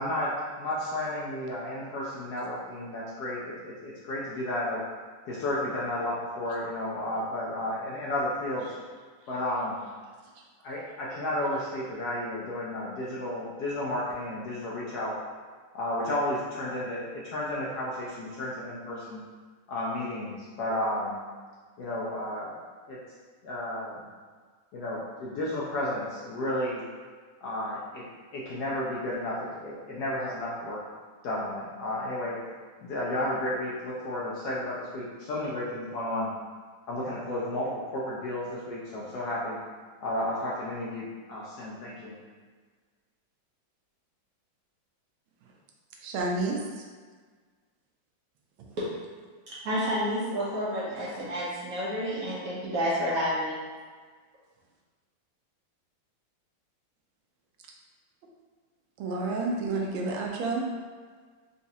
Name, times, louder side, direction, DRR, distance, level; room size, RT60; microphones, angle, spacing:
voice 1, 0.0-4.8 5.3-8.7 9.3-9.8 10.6-15.2 15.7-19.2 19.7-21.2 21.8-22.5 22.9-23.0 23.4-24.1 24.7-26.8 27.4-28.1 28.3-30.8 31.2-32.4 32.8-36.3 36.9-39.6 40.0-42.2, left 1 dB, 70° left, -6 dB, 1.0 m, -32 dB
voice 2, 46.0-46.8 59.0-60.6, right 3 dB, 90° right, 0 dB, 1.4 m, -30 dB
voice 3, 49.5-53.5, equal, 65° right, -8 dB, 0.9 m, -30 dB
4.0 x 2.4 x 2.7 m, 1.5 s
omnidirectional pair, 2.2 m